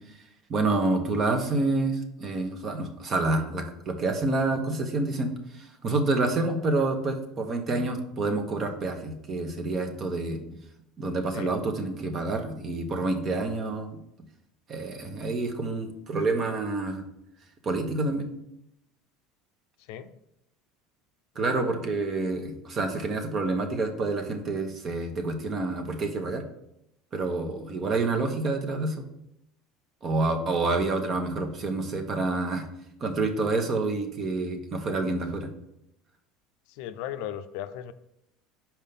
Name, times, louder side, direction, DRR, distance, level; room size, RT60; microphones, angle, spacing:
voice 1, 0.5-10.4 11.0-13.9 14.7-17.0 17.6-18.3 21.3-26.4 27.1-29.0 30.0-32.6 33.0-35.5, right 2 dB, 40° right, 6 dB, 1.1 m, -28 dB
voice 2, 21.3-21.7 36.7-37.9, left 10 dB, 70° left, 11 dB, 0.4 m, -37 dB
5.4 x 4.5 x 5.3 m, 0.80 s
supercardioid pair, 100°, 0 cm